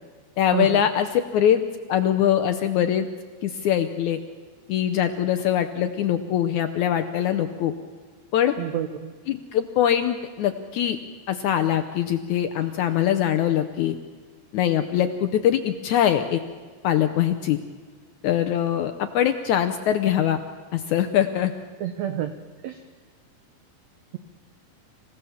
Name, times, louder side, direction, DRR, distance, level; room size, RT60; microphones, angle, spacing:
voice 1, 0.4-1.6 1.9-3.1 3.4-4.2 4.7-7.7 8.3-8.5 9.3-11.0 11.3-14.0 14.5-16.4 16.8-17.6 18.2-20.4 20.7-21.5, left 10 dB, 75° left, 9 dB, 1.8 m, -22 dB
voice 2, 8.6-9.1 21.8-22.3 22.6-22.8, right 10 dB, 80° right, 8 dB, 1.5 m, -28 dB
27.0 x 16.0 x 7.1 m, 1.5 s
omnidirectional pair, 4.2 m